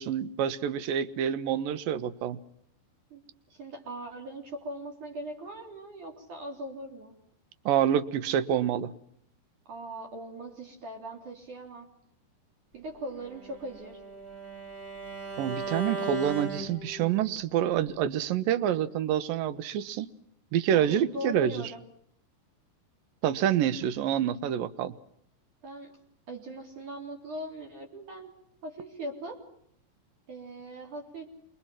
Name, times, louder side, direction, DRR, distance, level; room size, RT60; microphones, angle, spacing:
voice 1, 0.0-2.4 7.7-8.9 15.4-20.1 20.5-21.6 23.2-24.9, right 10 dB, 70° right, 14 dB, 2.7 m, -27 dB
voice 2, 3.5-7.1 9.7-11.9 12.7-14.0 20.7-21.8 25.6-26.0 26.3-28.3 28.6-29.4 30.3-31.3, right 1 dB, 50° right, 2 dB, 5.2 m, -40 dB
Bowed string instrument, 13.2-17.3, right 2 dB, 20° right, 4.4 m, -37 dB
27.0 x 24.0 x 7.5 m, 0.70 s
omnidirectional pair, 4.6 m